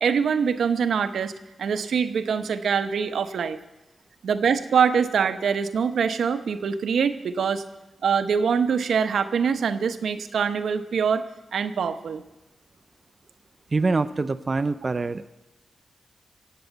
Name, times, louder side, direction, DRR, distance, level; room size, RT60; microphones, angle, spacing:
voice 1, 0.0-1.3 1.6-3.6 4.2-7.6 8.0-11.3 11.5-12.2, right 6 dB, 85° right, 9 dB, 0.9 m, -24 dB
voice 2, 13.7-15.3, right 3 dB, 40° right, 10 dB, 0.5 m, -25 dB
18.0 x 7.8 x 8.2 m, 0.99 s
cardioid pair, 75°, 0 cm